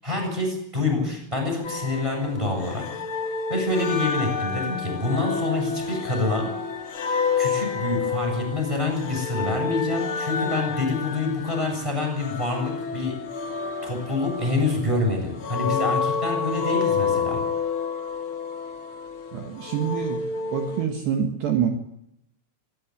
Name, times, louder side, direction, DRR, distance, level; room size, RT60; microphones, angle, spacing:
voice 1, 0.0-2.8 3.5-6.5 7.4-13.2 13.8-17.4, left 2 dB, 5° right, 1 dB, 7.6 m, -26 dB
sound 1, 1.6-20.8, left 5 dB, 55° left, 1.4 m, -29 dB
voice 2, 19.3-20.2 20.5-21.7, right 8 dB, 65° right, 4 dB, 3.8 m, -26 dB
25.5 x 12.5 x 9.8 m, 0.79 s
omnidirectional pair, 5.5 m